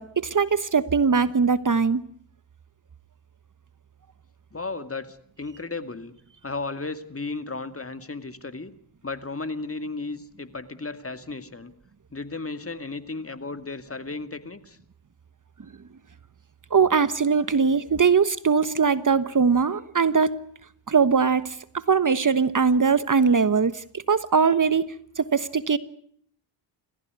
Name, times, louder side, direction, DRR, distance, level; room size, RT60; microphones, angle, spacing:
voice 1, 0.0-2.0 16.7-20.3 20.9-25.8, right 5 dB, 40° right, 14 dB, 1.2 m, -21 dB
voice 2, 4.5-6.2 6.4-8.7 9.0-11.7 12.1-14.8, left 3 dB, 30° left, 10 dB, 2.3 m, -34 dB
29.0 x 15.0 x 9.6 m, 0.63 s
cardioid pair, 65°, 49 cm